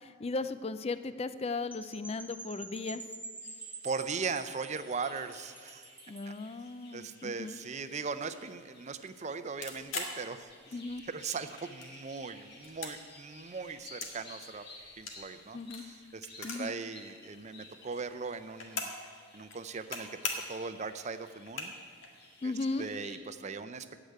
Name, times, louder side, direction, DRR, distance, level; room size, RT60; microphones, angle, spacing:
voice 1, 0.0-3.1 6.1-7.6 10.7-11.0 15.5-15.8 16.4-16.7 22.4-22.9, left 3 dB, 30° left, 13 dB, 0.4 m, -36 dB
Percussion / Wind chime, 1.7-6.4, right 3 dB, 5° right, 1.0 m, -47 dB
sound 1, 3.4-23.2, left 2 dB, 55° left, 2.2 m, -55 dB
voice 2, 3.8-5.9 6.9-10.5 11.1-14.6 15.0-18.9 19.3-20.2 20.5-21.7 22.4-22.5 22.8-23.9, right 5 dB, 35° right, 11 dB, 0.5 m, -39 dB
sound 2, 9.6-11.1 11.4-12.2 12.5-14.2 14.4-16.8 17.1-17.2 17.4-19.1 19.4-20.0 20.2-20.6 21.1-21.2 21.4-22.1, left 4 dB, 80° left, 1.8 m, -40 dB
14.5 x 5.0 x 9.2 m, 2.1 s
head